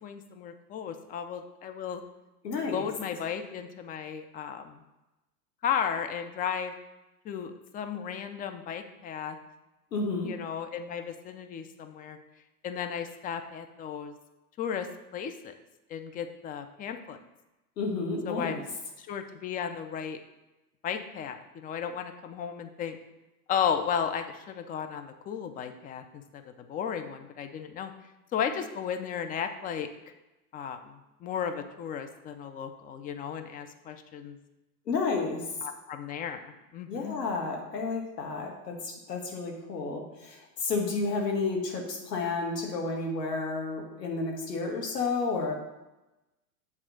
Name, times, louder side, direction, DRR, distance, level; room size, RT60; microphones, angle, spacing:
voice 1, 0.0-2.0 2.7-4.8 5.6-6.7 7.3-9.4 10.3-12.2 12.6-14.1 14.6-14.9 15.1-15.5 15.9-17.2 18.2-18.6 19.1-20.2 20.8-23.0 23.5-26.0 26.6-27.9 28.3-29.9 30.5-30.8 31.2-34.4 35.6-37.2, left 8 dB, 20° left, 7 dB, 0.4 m, -34 dB
voice 2, 2.4-2.9 9.9-10.3 17.8-18.6 34.9-35.4 36.9-45.5, left 3 dB, 90° left, 0 dB, 1.9 m, -31 dB
7.8 x 3.6 x 6.3 m, 1.0 s
hypercardioid pair, 110°, 47 cm